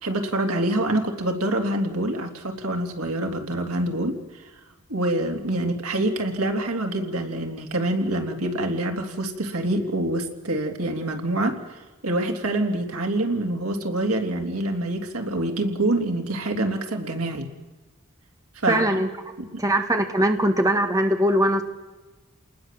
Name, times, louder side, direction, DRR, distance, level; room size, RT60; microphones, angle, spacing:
voice 1, 0.0-4.2 4.9-17.5 18.5-19.0 19.4-19.6, right 1 dB, 90° right, 3 dB, 3.4 m, -26 dB
voice 2, 18.7-19.1 19.6-21.6, right 1 dB, 15° right, 5 dB, 1.7 m, -21 dB
30.0 x 20.0 x 7.7 m, 1.2 s
head